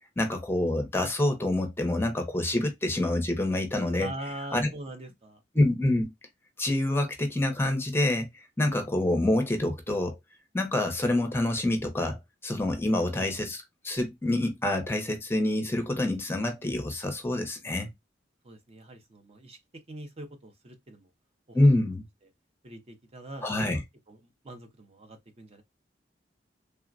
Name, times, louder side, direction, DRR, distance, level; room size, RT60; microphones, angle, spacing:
voice 1, 0.2-4.1 4.5-4.7 5.5-6.1 6.6-10.2 10.5-12.2 12.4-17.9 21.5-22.0 23.4-23.8, left 1 dB, 15° left, 0.6 m, -26 dB
voice 2, 3.9-5.4 18.4-19.6 19.9-21.1 21.5-21.8 22.6-25.6, right 1 dB, 35° right, 0.6 m, -43 dB
3.3 x 2.1 x 2.4 m
head